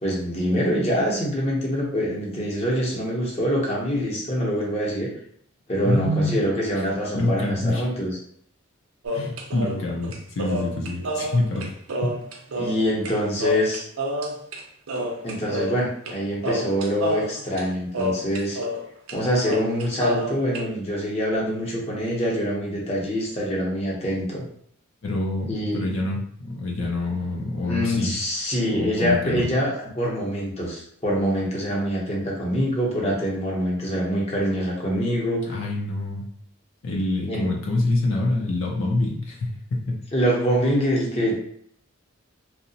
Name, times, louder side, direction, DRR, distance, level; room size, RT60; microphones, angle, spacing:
voice 1, 0.0-5.1 5.7-8.2 12.5-13.8 15.2-18.6 19.1-24.4 25.5-25.8 27.6-35.4 37.3-37.5 40.1-41.4, equal, 30° left, -4 dB, 0.7 m, -25 dB
voice 2, 5.8-6.4 7.1-7.9 9.1-11.7 12.0-12.2 12.6-12.7 25.0-28.1 28.7-29.5 35.5-36.2 36.8-40.0, left 2 dB, 65° left, -2 dB, 0.5 m, -26 dB
sound 1, 9.0-13.1 13.4-14.6 14.9-16.2 16.4-18.8 19.1-19.2 19.4-20.6, equal, 80° right, 0.5 m, -29 dB
2.7 x 2.1 x 2.7 m, 0.65 s
head